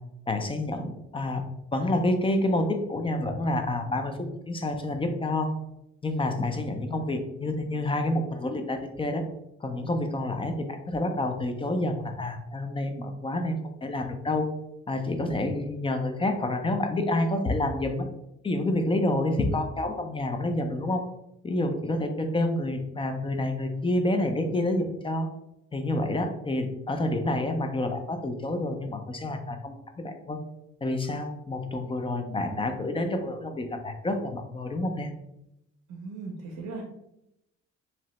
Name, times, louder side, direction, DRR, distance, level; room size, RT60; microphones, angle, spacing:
voice 1, 0.3-1.4 1.7-5.5 6.0-9.2 9.6-14.5 14.9-18.0 18.4-21.0 21.4-25.3 25.7-30.4 30.8-35.1, left 1 dB, 20° left, 5 dB, 0.4 m, -28 dB
voice 2, 35.9-36.8, right 3 dB, 70° right, 0 dB, 0.6 m, -38 dB
2.8 x 2.0 x 2.9 m, 0.84 s
cardioid pair, 90°, 30 cm